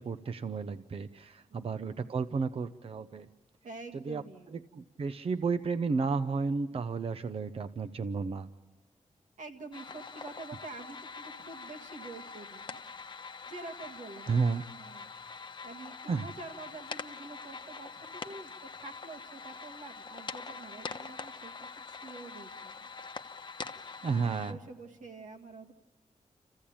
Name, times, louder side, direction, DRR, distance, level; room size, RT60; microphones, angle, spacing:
voice 1, 0.0-3.3 3.9-4.2 4.5-8.5 14.3-14.6 16.1-16.3 24.0-24.6, right 4 dB, 50° right, 10 dB, 0.7 m, -32 dB
voice 2, 1.5-2.1 3.6-4.5 9.4-12.8 13.5-15.1 15.6-22.9 24.0-25.7, right 3 dB, 90° right, 3 dB, 2.0 m, -47 dB
sound 1, 9.7-24.5, left 5 dB, 40° left, 1.0 m, -44 dB
28.5 x 15.5 x 8.7 m, 1.2 s
wide cardioid pair, 130°, 13 cm